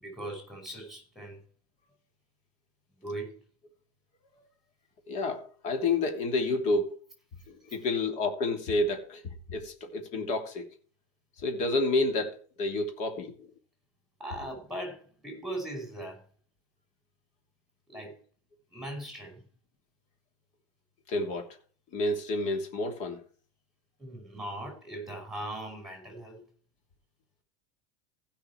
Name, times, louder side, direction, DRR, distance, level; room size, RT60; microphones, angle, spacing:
voice 1, 0.0-1.4 3.0-3.4 14.2-16.2 17.9-18.1 18.7-19.4 24.0-26.4, right 1 dB, ahead, 5.4 m, -39 dB
voice 2, 5.1-7.0 7.5-9.2 9.5-10.7 11.4-13.3 21.1-21.5 21.9-23.2, left 2 dB, 40° left, 3.0 m, -29 dB
16.0 x 6.0 x 4.7 m
supercardioid pair, 140°, 19 cm